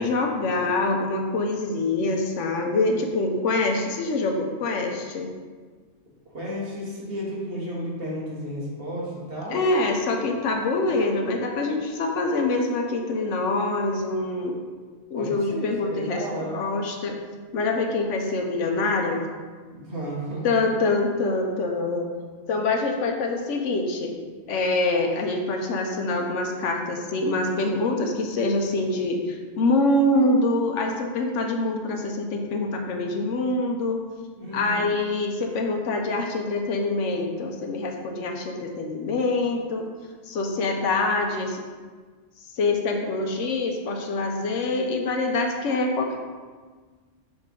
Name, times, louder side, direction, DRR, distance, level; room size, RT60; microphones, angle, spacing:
voice 1, 0.0-5.3 9.5-14.6 15.1-17.2 17.5-19.2 20.4-22.1 22.5-24.1 24.5-34.0 34.5-39.9 40.3-41.6 42.6-46.2, left 2 dB, 80° left, 3 dB, 1.1 m, -25 dB
voice 2, 6.3-9.6 15.2-16.6 19.7-20.5 34.4-34.9, equal, 50° right, -5 dB, 1.7 m, -33 dB
6.3 x 4.4 x 3.7 m, 1.5 s
omnidirectional pair, 1.3 m